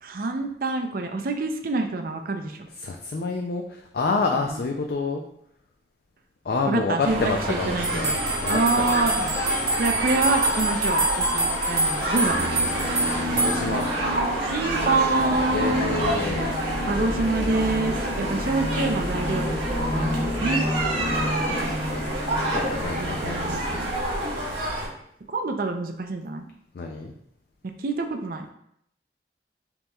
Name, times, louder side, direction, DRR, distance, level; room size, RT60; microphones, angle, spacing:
voice 1, 0.0-2.6 4.4-4.5 6.7-7.2 7.7-8.1 8.5-9.2 9.8-12.4 14.5-15.9 16.9-20.6 21.5-22.0 23.0-24.0 25.3-26.5 27.8-28.5, right 3 dB, 50° right, 5 dB, 0.4 m, -26 dB
voice 2, 2.8-5.2 6.4-9.3 13.3-13.8 15.3-16.5 21.0-21.7 22.4-23.7 26.7-27.1, left 3 dB, 55° left, 3 dB, 0.4 m, -29 dB
sound 1, 7.0-24.9, right 1 dB, 90° right, 1.4 m, -28 dB
sound 2, 7.8-13.9, right 2 dB, 20° right, 0.8 m, -26 dB
sound 3, 12.3-23.8, left 1 dB, 40° left, 0.9 m, -31 dB
5.3 x 2.9 x 2.3 m, 0.72 s
head